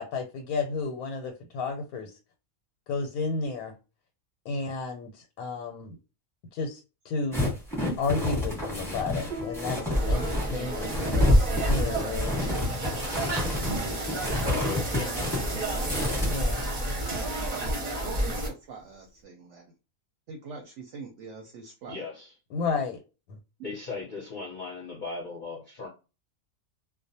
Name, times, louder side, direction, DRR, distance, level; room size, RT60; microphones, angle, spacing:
voice 1, 0.0-2.1 2.9-3.7 4.5-6.0 6.5-7.5 8.0-11.4 11.7-12.4 16.3-16.7 22.5-23.0, left 4 dB, 90° left, 1.1 m, -32 dB
sound 1, 7.3-16.3, left 2 dB, ahead, 0.9 m, -30 dB
Piano, 9.3-19.2, right 1 dB, 80° right, 0.4 m, -47 dB
sound 2, 9.9-18.5, equal, 40° right, 0.6 m, -28 dB
voice 2, 14.2-16.0 21.9-22.3 23.6-25.9, left 4 dB, 45° left, 0.7 m, -38 dB
voice 3, 18.0-19.7 20.3-22.0, right 4 dB, 65° right, 0.8 m, -43 dB
2.4 x 2.1 x 2.6 m
omnidirectional pair, 1.5 m